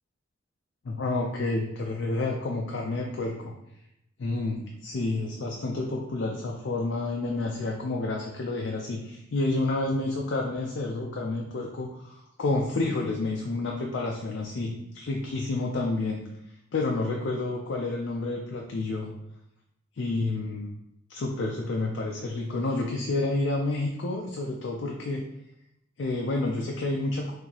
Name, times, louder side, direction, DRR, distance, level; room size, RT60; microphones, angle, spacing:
voice 1, 0.8-3.5 4.2-16.2 16.7-19.1 20.0-20.7 21.1-25.2 26.0-27.3, left 2 dB, 65° left, 0 dB, 0.4 m, -29 dB
3.9 x 2.7 x 2.9 m, 0.82 s
head